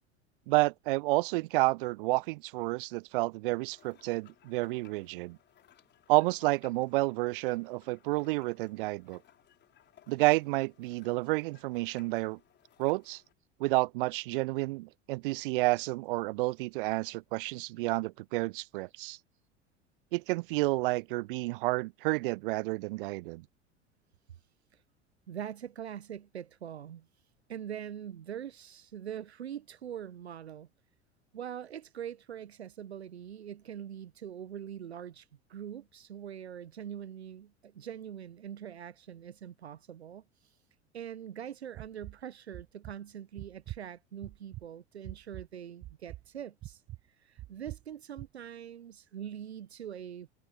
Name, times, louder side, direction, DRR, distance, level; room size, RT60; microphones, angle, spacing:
voice 1, 0.5-5.4 6.1-9.2 10.1-12.4 12.8-13.2 13.6-19.2 20.1-23.4, right 22 dB, 55° right, 0.6 m, -30 dB
sound 1, 3.4-13.3, left 10 dB, 35° left, 4.6 m, -63 dB
voice 2, 25.3-27.1 27.5-30.7 31.3-40.5 40.9-46.8 47.2-50.3, right 9 dB, 75° right, 0.9 m, -43 dB
sound 2, 41.7-42.2 42.5-42.9 43.4-43.8 44.2-44.6 45.0-45.5 45.8-46.3 46.6-47.0 47.4-47.8 48.2-48.3, right 16 dB, 35° right, 1.1 m, -44 dB
figure-of-eight pair, 75°, 32 cm